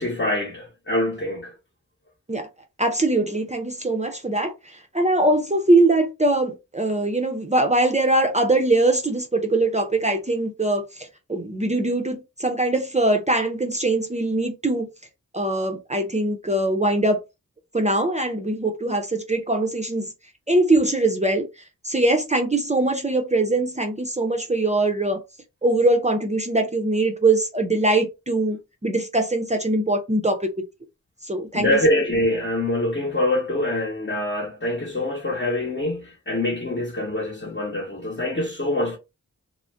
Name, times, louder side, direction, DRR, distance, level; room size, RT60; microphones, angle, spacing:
voice 1, 0.0-1.5 31.5-39.0, left 1 dB, 35° left, 0.9 m, -24 dB
voice 2, 2.8-14.9 15.3-17.2 17.7-20.1 20.5-21.5 21.8-25.2 25.6-30.6 31.2-31.8, right 2 dB, 20° right, 0.5 m, -22 dB
2.5 x 2.1 x 3.3 m
wide cardioid pair, 85°, 33 cm